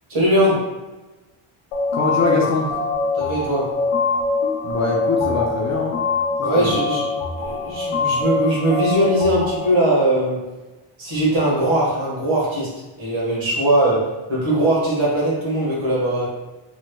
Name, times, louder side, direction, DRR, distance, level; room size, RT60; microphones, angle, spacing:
voice 1, 0.1-0.6 3.1-3.7 6.4-7.1 7.4-10.5 11.0-12.7 13.0-16.3, right 1 dB, 70° right, -6 dB, 1.5 m, -20 dB
sound 1, 1.7-9.7, left 4 dB, 85° left, 0.7 m, -23 dB
voice 2, 1.9-2.7 4.6-6.0 6.6-6.8, left 3 dB, 35° left, -2 dB, 0.4 m, -22 dB
3.1 x 3.0 x 2.2 m, 1.1 s
cardioid pair, 130°, 49 cm